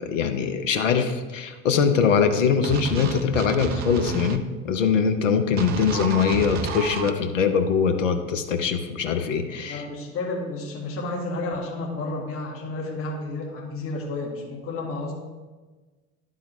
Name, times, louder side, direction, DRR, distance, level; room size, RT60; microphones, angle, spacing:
voice 1, 0.0-9.8, left 6 dB, 70° left, 6 dB, 0.8 m, -22 dB
sound 1, 2.6-4.4 5.6-7.1, right 6 dB, 25° right, 0.4 m, -30 dB
voice 2, 9.7-15.1, left 2 dB, 35° left, -1 dB, 1.9 m, -31 dB
11.5 x 3.9 x 3.2 m, 1.3 s
figure-of-eight pair, 70°, 38 cm